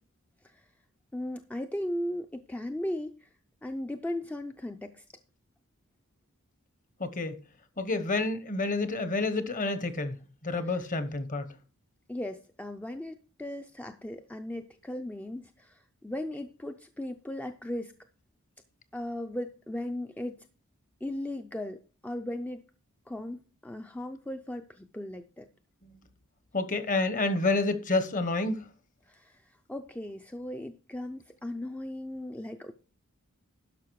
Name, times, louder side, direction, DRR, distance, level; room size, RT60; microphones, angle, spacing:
voice 1, 1.1-3.3 3.6-5.0 10.6-10.8 12.1-17.9 18.9-20.5 21.0-22.6 23.1-25.5 29.0-32.7, left 1 dB, 5° left, 0.4 m, -37 dB
voice 2, 7.0-7.4 7.8-10.2 10.4-11.5 26.5-28.7, left 3 dB, 35° left, 1.0 m, -29 dB
12.0 x 5.8 x 4.6 m
head